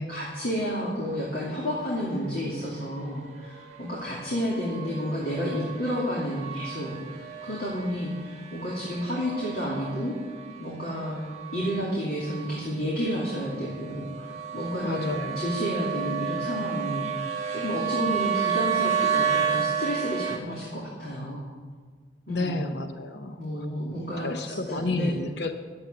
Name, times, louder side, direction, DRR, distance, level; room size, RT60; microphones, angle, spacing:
voice 1, 0.1-10.1 10.6-11.2 11.5-17.1 17.5-21.5 22.3-22.6 23.4-25.1, equal, 55° left, -6 dB, 2.7 m, -31 dB
sound 1, 0.7-20.4, right 7 dB, 40° right, 1.4 m, -32 dB
voice 2, 14.8-15.4 22.3-23.4 24.2-25.5, left 2 dB, 75° left, 8 dB, 0.8 m, -31 dB
11.5 x 7.9 x 8.3 m, 1.5 s
head